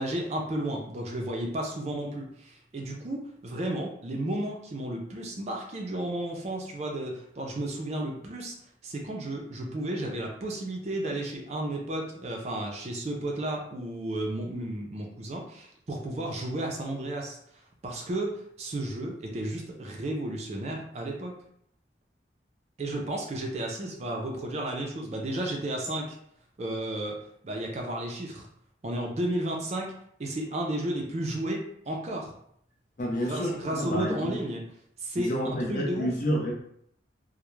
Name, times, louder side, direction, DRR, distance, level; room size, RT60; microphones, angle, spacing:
voice 1, 0.0-8.6 8.8-17.4 17.8-21.3 22.8-26.2 26.6-27.2 27.4-28.5 28.8-29.9 30.2-32.3 33.2-34.6 35.0-36.1, right 1 dB, 35° right, 1 dB, 0.4 m, -33 dB
voice 2, 33.0-34.4 35.2-36.5, equal, 45° left, -1 dB, 0.5 m, -29 dB
2.3 x 2.0 x 3.0 m, 0.69 s
head